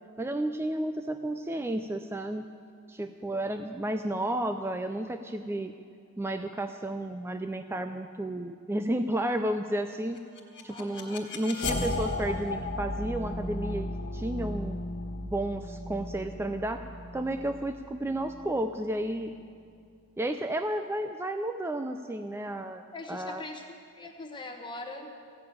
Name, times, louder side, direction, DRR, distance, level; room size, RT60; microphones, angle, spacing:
voice 1, 0.2-2.5 2.9-5.7 6.2-10.2 10.6-14.8 15.3-16.8 17.1-19.3 20.2-22.8 23.1-23.4, right 1 dB, 10° right, 7 dB, 0.3 m, -32 dB
sound 1, 10.2-19.1, left 2 dB, 55° left, 1.5 m, -36 dB
voice 2, 10.7-11.2 22.9-25.1, left 2 dB, 20° left, 2 dB, 1.0 m, -42 dB
15.0 x 6.8 x 9.3 m, 2.3 s
head